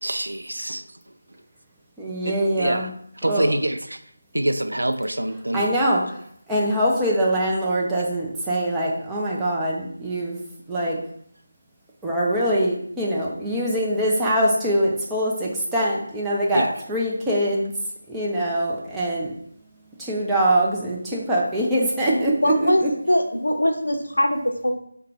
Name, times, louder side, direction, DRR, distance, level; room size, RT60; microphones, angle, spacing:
voice 1, 0.0-0.8 2.2-2.9 3.2-3.8 4.3-5.6 16.5-16.7, right 1 dB, 75° right, 9 dB, 0.3 m, -25 dB
voice 2, 2.0-2.9 3.2-3.5 5.5-6.2 6.5-10.4 10.7-11.0 12.0-17.7 18.1-19.3 20.0-22.9, right 1 dB, 5° right, -6 dB, 0.5 m, -23 dB
voice 3, 22.1-24.7, left 1 dB, 75° left, 4 dB, 0.6 m, -22 dB
5.0 x 2.2 x 2.9 m, 0.68 s
figure-of-eight pair, 160°, 0 cm